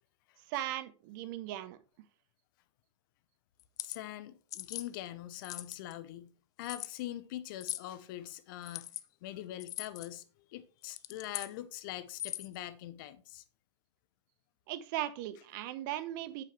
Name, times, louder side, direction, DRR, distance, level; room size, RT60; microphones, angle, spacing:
voice 1, 0.4-1.8 14.7-16.4, right 13 dB, 40° right, 1.0 m, -38 dB
sound 1, 3.6-4.0 4.5-4.9 5.4-5.9 6.6-6.9 7.6-7.9 8.6-9.0 9.6-10.1 10.8-11.5 12.1-12.6, left 13 dB, 25° left, 0.5 m, -40 dB
voice 2, 3.8-6.3 6.6-8.9 9.2-13.4, left 13 dB, 45° left, 0.9 m, -43 dB
8.6 x 7.4 x 3.3 m
figure-of-eight pair, 110°, 15 cm